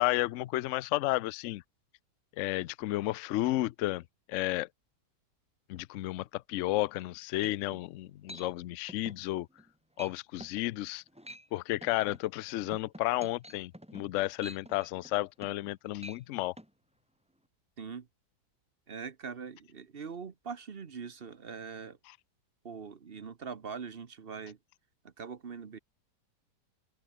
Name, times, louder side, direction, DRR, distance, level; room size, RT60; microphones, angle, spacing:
voice 1, 0.0-1.6 2.4-4.0 4.3-4.7 5.7-9.5 10.0-11.0 11.5-16.5, left 16 dB, 75° left, 0.7 m, -32 dB
sound 1, 7.0-7.1 7.4-7.8 8.3-8.5 8.9-9.2 9.6-9.7 10.0-10.1 10.4-10.6 11.1-11.5 11.8-15.7 16.0-16.2 16.6-16.7, equal, 5° right, 3.3 m, -48 dB
voice 2, 17.8-18.1 18.9-22.0 22.6-24.6 25.0-25.8, right 6 dB, 40° right, 1.1 m, -42 dB
open air
omnidirectional pair, 1.8 m